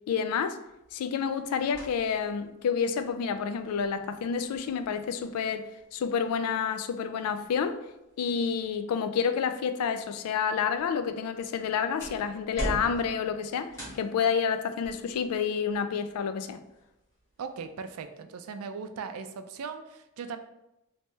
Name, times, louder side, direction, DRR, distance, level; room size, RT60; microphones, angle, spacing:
voice 1, 0.1-0.6 0.9-7.8 8.2-16.6, left 6 dB, 85° left, 10 dB, 0.3 m, -29 dB
sound 1, 0.6-18.0, right 1 dB, 15° left, 1.3 m, -46 dB
voice 2, 17.4-20.4, right 5 dB, 80° right, 8 dB, 0.4 m, -38 dB
3.2 x 2.7 x 3.1 m, 0.90 s
head